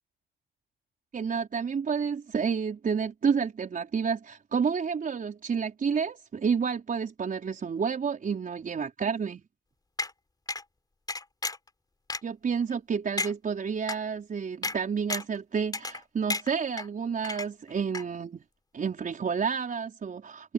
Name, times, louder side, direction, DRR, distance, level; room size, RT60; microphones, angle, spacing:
voice 1, 1.1-9.4 12.2-18.4 18.7-20.5, right 6 dB, 45° right, 5.0 m, -30 dB
sound 1, 10.0-10.1 10.5-10.6 11.1-11.7 12.1-12.2 12.7-12.8 13.2-13.3 13.9-14.0 14.6-14.8 15.1-15.4 15.7-16.0 16.3-16.9 17.2-17.7 17.9-18.0, left 2 dB, 20° left, 4.2 m, -32 dB
cardioid pair, 90°, 20 cm